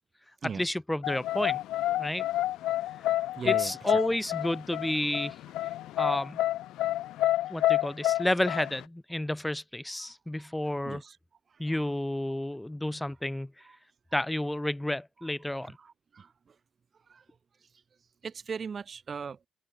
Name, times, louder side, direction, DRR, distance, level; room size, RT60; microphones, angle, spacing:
voice 1, 0.4-1.6 2.0-2.2 3.4-5.3 6.0-6.4 7.5-11.0 11.6-13.5 14.1-15.8, left 1 dB, 10° left, 1.2 m, -31 dB
sound 1, 1.0-8.8, left 14 dB, 85° left, 1.2 m, -29 dB
voice 2, 3.4-3.7 10.0-10.1 10.8-11.2 11.7-11.8 13.7-13.8 15.6-16.3 17.1-17.2 18.2-19.4, right 6 dB, 45° right, 0.6 m, -39 dB
open air
cardioid pair, 90°, 0 cm